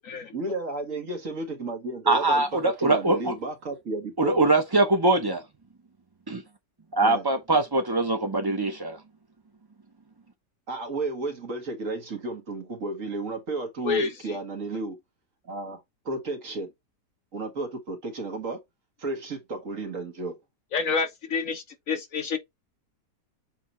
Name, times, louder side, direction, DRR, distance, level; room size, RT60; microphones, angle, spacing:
voice 1, 0.3-4.5 7.0-7.2 10.7-15.0 15.4-16.7 17.3-18.6 19.0-20.4, right 3 dB, 50° right, 1.9 m, -33 dB
voice 2, 2.1-3.3 4.2-5.4 6.3-6.4 6.9-9.0, right 2 dB, 25° right, 0.4 m, -22 dB
voice 3, 20.7-22.4, left 5 dB, 60° left, 1.2 m, -27 dB
8.0 x 2.8 x 4.3 m
omnidirectional pair, 1.8 m